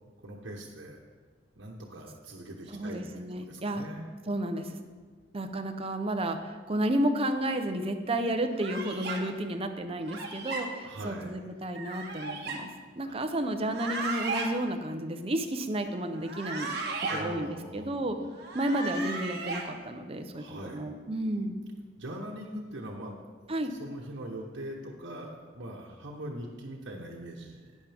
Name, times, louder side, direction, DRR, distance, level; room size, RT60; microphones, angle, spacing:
voice 1, 0.2-1.0 1.6-4.1 10.8-11.4 13.0-13.1 17.1-18.2 20.3-20.9 22.0-23.1 23.4-27.8, right 1 dB, 85° right, -4 dB, 1.2 m, -42 dB
voice 2, 2.7-3.8 4.3-4.8 5.3-12.7 13.0-16.7 17.0-18.2 18.5-21.6 23.5-23.7, right 1 dB, 30° right, 6 dB, 0.8 m, -32 dB
sound 1, 8.6-9.2 10.1-10.6 11.7-12.6 13.6-14.5 16.2-17.2 18.3-19.6, right 3 dB, 60° right, 1.4 m, -35 dB
12.0 x 9.8 x 3.5 m, 1.5 s
head